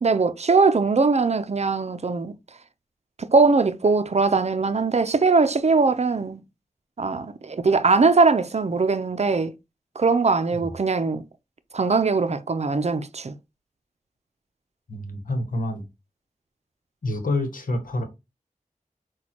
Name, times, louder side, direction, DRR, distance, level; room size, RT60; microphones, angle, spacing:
voice 1, 0.0-2.3 3.2-6.4 7.0-9.5 10.0-11.2 11.7-13.3, right 4 dB, 50° right, 0.5 m, -21 dB
voice 2, 14.9-15.9 17.0-18.0, left 1 dB, 80° left, 1.0 m, -27 dB
6.1 x 2.3 x 2.9 m
cardioid pair, 40°, 14 cm